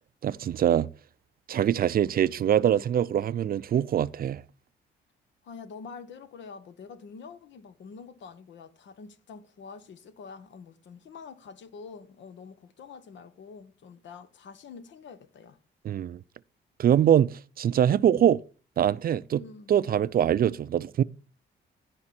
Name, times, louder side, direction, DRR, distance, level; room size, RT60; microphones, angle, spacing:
voice 1, 0.2-0.9 1.5-4.4 15.8-16.2 16.8-18.4 18.8-19.4 19.7-21.0, right 10 dB, 50° right, 0.4 m, -23 dB
voice 2, 5.4-15.6 19.3-19.7, left 5 dB, 70° left, 1.2 m, -46 dB
16.0 x 5.3 x 4.3 m
cardioid pair, 90°, 20 cm